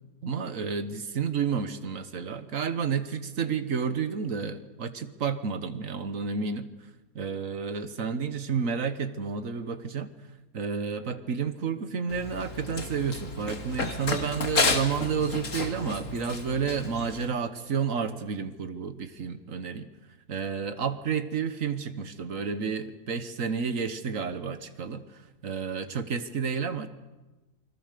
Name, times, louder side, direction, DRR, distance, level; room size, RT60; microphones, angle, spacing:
voice 1, 0.2-6.7 7.2-10.1 10.5-19.9 20.3-25.0 25.4-26.9, right 6 dB, 65° right, 10 dB, 1.7 m, -31 dB
Run, 12.1-17.2, left 3 dB, 60° left, 2.3 m, -31 dB
28.5 x 21.0 x 6.8 m, 1.1 s
omnidirectional pair, 1.5 m